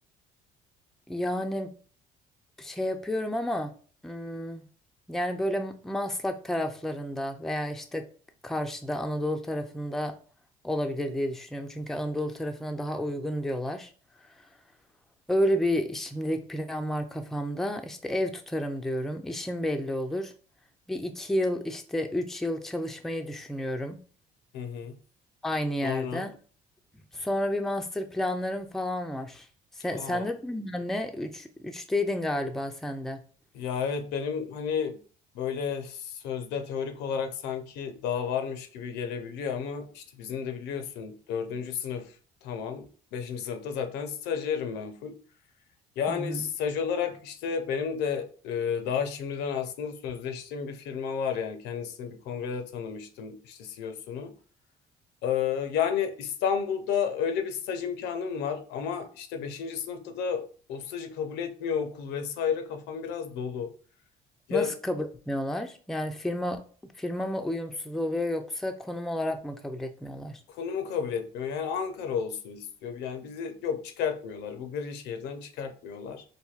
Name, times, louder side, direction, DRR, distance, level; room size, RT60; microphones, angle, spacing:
voice 1, 1.1-1.7 2.6-3.7 4.0-4.7 5.1-8.0 8.4-10.1 10.6-13.9 15.3-20.3 20.9-24.0 25.4-26.3 27.1-29.5 29.8-33.2 46.1-46.5 64.5-66.6 67.0-70.4, left 1 dB, ahead, 5 dB, 0.4 m, -31 dB
voice 2, 24.5-25.0 25.8-26.3 29.9-30.3 33.5-35.0 35.3-42.1 42.4-45.2 46.0-54.3 55.2-63.7 64.5-64.7 70.5-76.2, left 7 dB, 90° left, 7 dB, 0.6 m, -32 dB
4.3 x 2.6 x 2.4 m, 0.41 s
cardioid pair, 110°, 17 cm